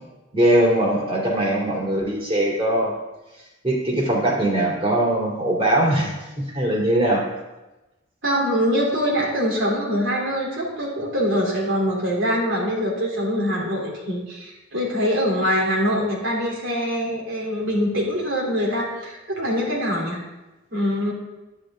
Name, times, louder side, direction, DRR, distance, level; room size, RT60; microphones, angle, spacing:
voice 1, 0.3-2.9 3.6-7.2, right 1 dB, 30° right, -3 dB, 2.5 m, -21 dB
voice 2, 8.2-20.2 20.7-21.1, equal, 80° right, -3 dB, 3.4 m, -23 dB
10.5 x 9.3 x 3.8 m, 1.1 s
head